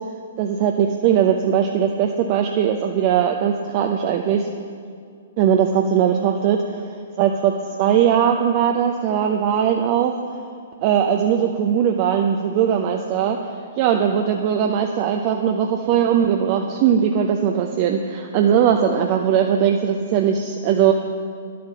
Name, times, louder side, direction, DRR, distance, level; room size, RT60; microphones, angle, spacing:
voice 1, 0.4-4.5 5.4-6.8 7.2-10.1 10.8-13.4 13.8-20.9, right 8 dB, 40° right, 3 dB, 0.7 m, -19 dB
10.5 x 8.6 x 6.8 m, 2.3 s
figure-of-eight pair, 115°, 0 cm